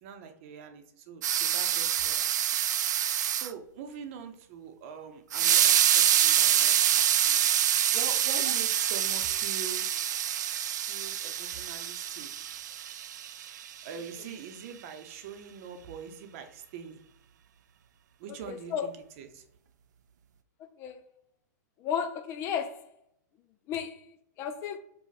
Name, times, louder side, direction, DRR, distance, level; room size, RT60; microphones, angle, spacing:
voice 1, 0.0-2.6 3.3-7.4 7.9-9.9 10.8-12.3 13.8-17.0 18.2-19.4, right 7 dB, 45° right, 0.8 m, -43 dB
sound 1, 1.2-3.5 5.3-13.7, right 10 dB, 75° right, 0.4 m, -26 dB
voice 2, 18.5-18.9 20.8-21.0 21.8-22.8 23.7-24.0 24.4-24.8, left 8 dB, 30° left, 0.4 m, -33 dB
5.1 x 2.3 x 4.1 m
hypercardioid pair, 140°, 10 cm